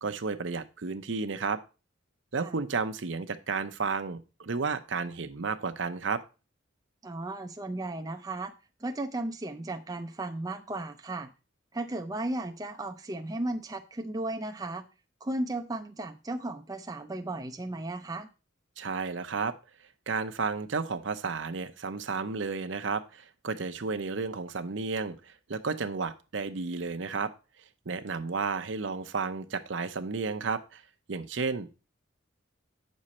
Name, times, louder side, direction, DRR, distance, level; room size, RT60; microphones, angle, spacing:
voice 1, 0.0-1.6 2.3-6.2 18.8-19.5 20.1-27.3 27.9-30.8 31.1-31.7, right 4 dB, 65° right, 9 dB, 0.7 m, -32 dB
voice 2, 7.0-8.5 8.8-11.3 11.7-14.8 15.2-18.3, right 2 dB, 20° right, 5 dB, 0.5 m, -35 dB
8.6 x 6.4 x 4.2 m, 0.31 s
head